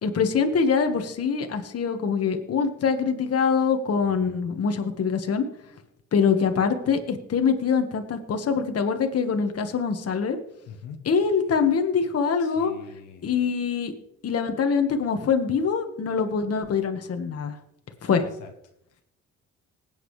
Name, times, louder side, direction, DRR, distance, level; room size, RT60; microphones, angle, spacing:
voice 1, 0.0-5.4 6.1-10.4 11.0-12.7 13.2-13.9 14.2-17.6 18.0-18.2, left 6 dB, 50° left, 6 dB, 1.6 m, -24 dB
voice 2, 4.0-4.4 10.7-11.0 12.4-13.3 18.4-18.5, left 6 dB, 85° left, 4 dB, 1.4 m, -43 dB
19.5 x 8.9 x 3.3 m, 0.76 s
cardioid pair, 90°, 30 cm